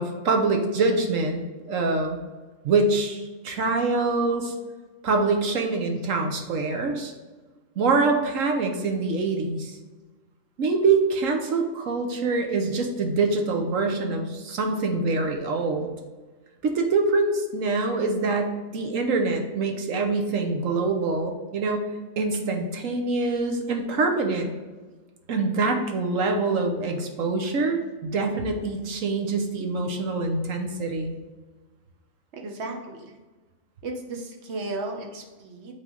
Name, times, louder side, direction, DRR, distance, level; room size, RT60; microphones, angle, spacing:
voice 1, 0.0-1.4 1.7-2.2 2.6-4.5 5.0-7.1 7.8-9.8 10.6-15.9 16.6-21.9 22.2-24.5 25.3-31.1, right 3 dB, 75° right, 3 dB, 1.3 m, -25 dB
voice 2, 32.3-33.2 33.8-35.7, right 2 dB, 60° right, 1 dB, 1.3 m, -36 dB
8.6 x 3.6 x 3.9 m, 1.3 s
omnidirectional pair, 1.4 m